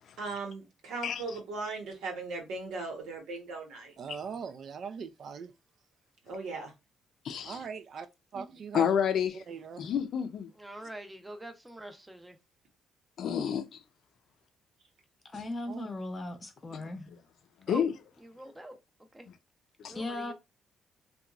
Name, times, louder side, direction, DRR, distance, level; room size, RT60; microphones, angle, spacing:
voice 1, 0.2-3.9 6.2-6.7, right 3 dB, 90° right, 1.1 m, -38 dB
voice 2, 4.0-5.5 7.5-8.1 8.3-9.0 9.5-9.8 15.7-15.9, right 6 dB, 60° right, 0.3 m, -40 dB
voice 3, 7.2-7.6 8.7-9.4 9.8-10.5 13.2-13.8 16.7-16.8 17.7-17.9 19.8-20.0, left 8 dB, 70° left, 0.5 m, -29 dB
voice 4, 10.6-12.4 17.7-17.8 18.2-18.8 19.1-19.3 19.9-20.3, right 1 dB, 10° right, 0.6 m, -44 dB
voice 5, 15.3-17.0 19.9-20.3, left 2 dB, 30° left, 0.7 m, -37 dB
2.8 x 2.3 x 2.3 m
cardioid pair, 90°, 0 cm